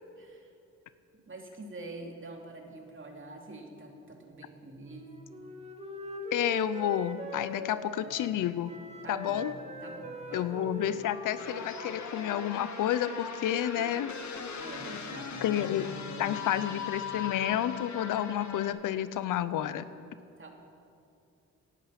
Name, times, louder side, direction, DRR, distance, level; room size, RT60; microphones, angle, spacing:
voice 1, 0.2-0.5 1.1-5.3 7.6-7.7 8.0-8.3 9.0-9.5 9.8-11.0 14.6-15.6 15.9-17.1 20.4-20.5, right 2 dB, 40° right, 1 dB, 2.9 m, -46 dB
Wind instrument woodwind instrument, 4.8-8.4 8.6-12.5, equal, 20° right, 2.0 m, -41 dB
voice 2, 6.3-8.7 9.1-9.5 10.3-14.1 15.4-15.9 16.2-19.9, left 11 dB, 85° left, 14 dB, 0.6 m, -30 dB
sound 1, 11.4-18.7, left 6 dB, 65° left, 1.6 m, -39 dB
17.5 x 11.0 x 5.9 m, 2.7 s
cardioid pair, 65°, 31 cm